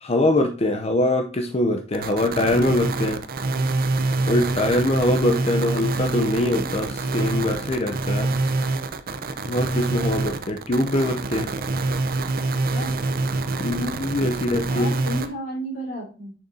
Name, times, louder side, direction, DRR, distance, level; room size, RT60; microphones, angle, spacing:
voice 1, 0.0-3.2 4.3-8.3 9.4-11.5 13.6-14.9, left 1 dB, 35° left, 5 dB, 0.6 m, -23 dB
sound 1, 1.9-15.3, right 3 dB, 50° right, 0.6 m, -26 dB
voice 2, 12.7-13.1 14.7-16.3, equal, 65° left, -8 dB, 3.4 m, -32 dB
6.5 x 6.3 x 2.7 m, 0.35 s
head